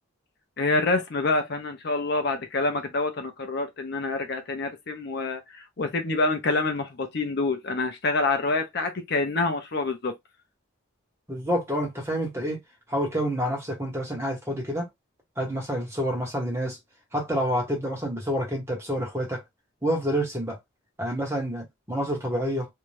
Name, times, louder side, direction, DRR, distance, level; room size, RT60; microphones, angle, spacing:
voice 1, 0.6-10.1, left 3 dB, 50° left, 0.5 m, -27 dB
voice 2, 11.3-12.6 12.9-14.9 15.4-16.8 17.1-19.4 19.8-20.6 21.0-22.7, equal, 10° right, 1.0 m, -28 dB
2.6 x 2.2 x 3.1 m
head